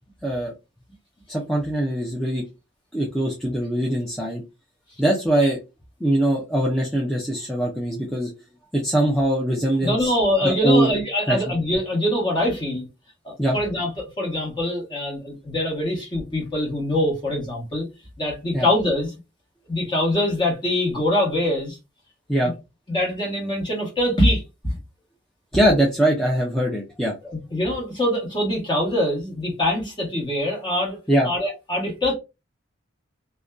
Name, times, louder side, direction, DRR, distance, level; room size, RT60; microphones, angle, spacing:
voice 1, 0.2-0.5 1.3-2.5 2.9-4.4 5.0-5.6 6.0-8.3 8.7-10.1 10.4-10.9 11.3-11.4 13.4-13.6 18.5-18.7 22.3-22.5 25.5-27.1 31.1-31.3, right 1 dB, 5° left, 0.4 m, -22 dB
voice 2, 9.8-12.8 13.2-17.8 18.2-19.1 19.7-21.8 22.9-24.4 27.2-31.0 31.2-32.1, left 1 dB, 25° left, 1.1 m, -23 dB
2.5 x 2.1 x 2.3 m
head